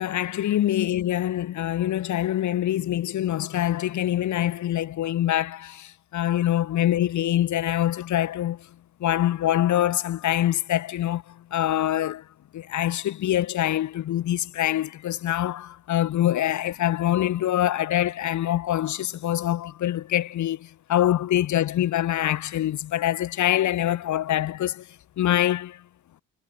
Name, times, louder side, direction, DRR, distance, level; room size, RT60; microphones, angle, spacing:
voice 1, 0.0-8.7 9.0-12.2 12.5-24.9 25.2-25.8, left 12 dB, 75° left, 2.4 m, -25 dB
cardioid pair, 90°, 30 cm